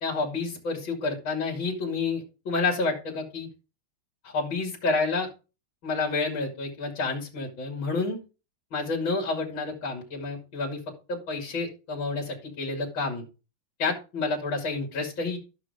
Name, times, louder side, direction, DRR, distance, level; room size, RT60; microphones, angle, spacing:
voice 1, 0.0-3.5 4.2-5.3 5.8-8.2 8.7-10.8 11.1-13.2 13.8-15.4, left 3 dB, 65° left, -1 dB, 3.2 m, -29 dB
14.5 x 6.2 x 3.6 m, 0.32 s
omnidirectional pair, 2.3 m